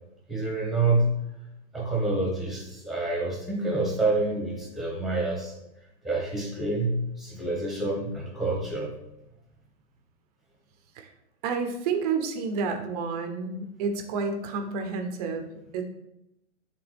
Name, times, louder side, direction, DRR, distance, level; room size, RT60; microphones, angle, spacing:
voice 1, 0.3-1.2 1.7-5.5 6.0-8.9, right 2 dB, ahead, -3 dB, 1.2 m, -27 dB
voice 2, 11.4-15.8, right 5 dB, 30° right, 5 dB, 0.7 m, -30 dB
8.8 x 3.5 x 3.4 m, 0.87 s
hypercardioid pair, 140°, 38 cm